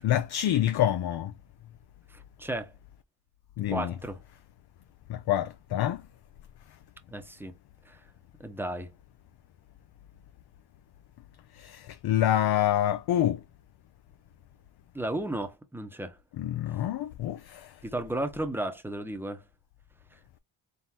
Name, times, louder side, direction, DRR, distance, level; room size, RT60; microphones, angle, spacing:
voice 1, 0.0-1.3 3.6-3.9 5.1-6.0 11.6-13.4 16.4-17.7, left 12 dB, 55° left, 0.5 m, -27 dB
voice 2, 2.1-2.7 3.7-4.2 7.1-7.5 7.9-8.0 8.4-8.9 14.9-16.2 17.8-19.4, right 1 dB, 5° right, 0.8 m, -34 dB
3.9 x 3.8 x 2.8 m
cardioid pair, 95°, 48 cm